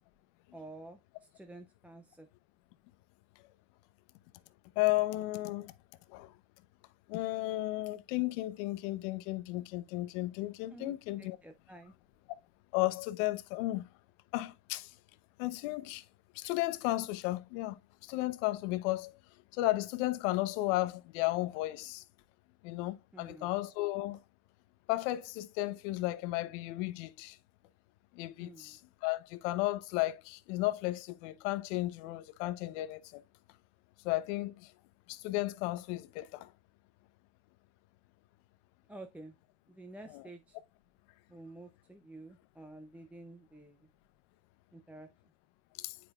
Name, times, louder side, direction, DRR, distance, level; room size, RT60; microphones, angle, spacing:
voice 1, 0.5-1.0 1.3-2.3 10.7-11.9 23.1-23.5 28.4-28.8 38.9-39.3 39.7-40.6 41.3-43.9 44.7-45.1, right 2 dB, 5° right, 0.5 m, -50 dB
voice 2, 4.8-5.7 6.1-6.3 7.1-11.4 12.7-13.9 14.3-14.9 15.4-16.0 16.3-19.1 19.5-22.0 22.6-24.2 24.9-27.4 28.1-33.2 34.0-34.7 35.1-36.5 40.1-40.2 45.8-46.0, left 18 dB, 80° left, 0.8 m, -34 dB
9.5 x 5.0 x 2.3 m
supercardioid pair, 130°, 37 cm